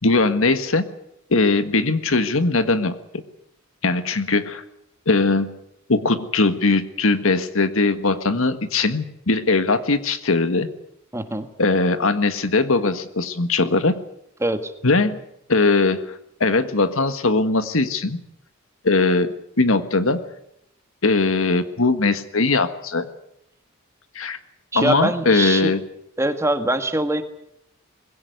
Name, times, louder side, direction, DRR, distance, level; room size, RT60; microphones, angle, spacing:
voice 1, 0.0-0.8 1.3-2.9 3.8-4.6 5.1-5.6 5.9-10.7 11.6-14.0 14.8-15.2 15.5-16.1 16.4-18.2 18.8-20.2 21.0-23.1 24.1-24.4 24.7-25.8, left 3 dB, 65° left, 11 dB, 1.6 m, -20 dB
voice 2, 11.1-11.5 14.4-14.7 24.7-25.7 26.2-27.2, right 1 dB, 15° right, 8 dB, 1.7 m, -23 dB
21.0 x 17.0 x 9.6 m, 0.78 s
head